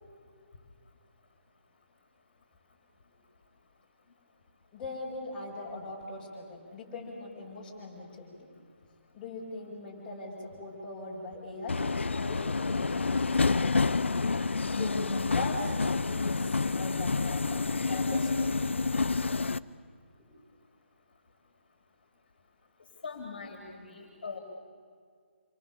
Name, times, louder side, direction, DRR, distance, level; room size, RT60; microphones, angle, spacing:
voice 1, 4.7-8.3 9.1-11.8 12.1-13.8 14.7-15.7 16.0-18.3, left 2 dB, 15° left, -5 dB, 6.1 m, -41 dB
Subway metro underground, 11.7-19.6, left 4 dB, 70° left, 0.7 m, -28 dB
voice 2, 23.0-24.4, left 5 dB, 50° left, 3 dB, 3.3 m, -41 dB
28.0 x 23.5 x 7.2 m, 2.1 s
figure-of-eight pair, 145°, 7 cm